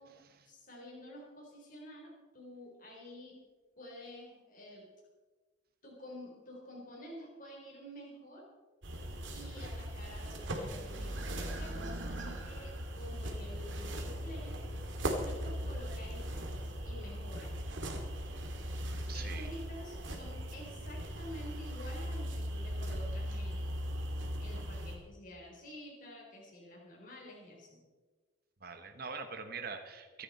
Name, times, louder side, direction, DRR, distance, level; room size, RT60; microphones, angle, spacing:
voice 1, 0.5-3.4 3.8-4.9 5.8-8.4 9.3-14.7 15.1-17.5 19.1-23.8 24.4-27.8, equal, 40° left, -3 dB, 4.2 m, -49 dB
sound 1, 8.8-25.0, equal, 65° right, 2.4 m, -39 dB
voice 2, 19.1-19.5 28.6-30.2, right 5 dB, 45° right, 6 dB, 1.3 m, -43 dB
24.5 x 9.7 x 4.3 m, 1.3 s
head